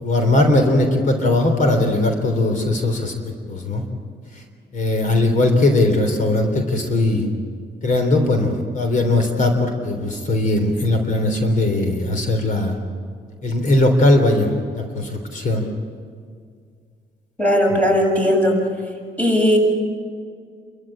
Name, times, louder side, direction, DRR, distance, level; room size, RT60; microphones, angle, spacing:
voice 1, 0.0-3.1 3.5-3.8 4.4-4.5 4.7-7.3 7.8-12.8 13.4-15.6, left 2 dB, 50° left, 5 dB, 3.5 m, -19 dB
voice 2, 17.4-18.5 19.2-19.6, equal, 10° left, 0 dB, 7.2 m, -17 dB
28.5 x 14.0 x 8.7 m, 2.1 s
cardioid pair, 95°, 17 cm